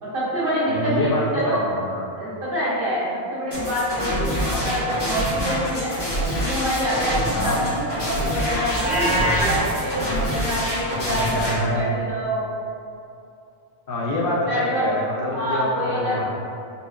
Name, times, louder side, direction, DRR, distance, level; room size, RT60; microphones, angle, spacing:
voice 1, 0.0-1.7 2.2-5.9 6.3-12.4 14.5-16.2, equal, 60° right, -8 dB, 1.2 m, -26 dB
voice 2, 0.7-2.0 4.4-4.8 7.3-7.6 11.1-11.9 13.9-16.2, left 1 dB, 65° left, -3 dB, 0.8 m, -26 dB
sound 1, 3.5-11.5, equal, 85° left, 1.9 m, -26 dB
Livestock farm animals working animals, 8.7-9.6, equal, 45° left, 1.0 m, -23 dB
4.1 x 3.4 x 2.3 m, 2.5 s
omnidirectional pair, 1.0 m